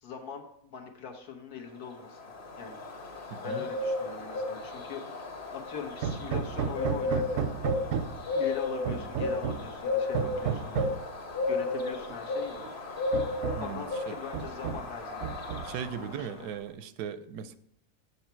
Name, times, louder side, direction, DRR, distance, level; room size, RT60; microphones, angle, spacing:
voice 1, 0.0-2.2 2.6-2.8 3.4-5.0 5.5-7.4 8.3-10.9 11.5-12.6 13.6-15.3 16.2-16.5, left 6 dB, 70° left, 1.6 m, -41 dB
Bird, 1.8-16.5, left 3 dB, 35° left, 1.2 m, -34 dB
voice 2, 3.3-3.7 13.6-14.2 15.6-17.6, right 8 dB, 90° right, 1.2 m, -38 dB
Hammer, 6.0-8.3 8.9-9.7 10.1-11.1 12.1-12.2 12.6-12.7 13.1-13.8 14.3-14.9 15.2-15.9, right 7 dB, 65° right, 0.7 m, -33 dB
7.2 x 6.9 x 4.4 m
omnidirectional pair, 1.7 m